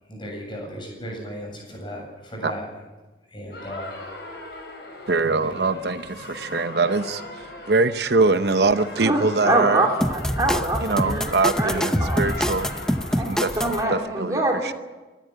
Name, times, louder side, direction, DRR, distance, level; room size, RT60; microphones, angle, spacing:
voice 1, 0.1-2.7 3.3-4.0 5.2-5.8 6.2-6.6, equal, 25° left, 1 dB, 7.9 m, -36 dB
sound 1, 3.5-14.0, left 2 dB, 65° left, 5.6 m, -38 dB
voice 2, 5.1-7.2 7.7-9.9 10.8-12.7 13.3-13.6 13.9-14.7, right 3 dB, 65° right, 10 dB, 0.8 m, -23 dB
voice 3, 9.0-12.2 13.1-13.3 13.6-14.7, right 2 dB, 20° right, 0 dB, 2.7 m, -25 dB
sound 2, 10.0-13.8, equal, 5° left, 0.6 m, -25 dB
24.5 x 13.0 x 9.9 m, 1.2 s
head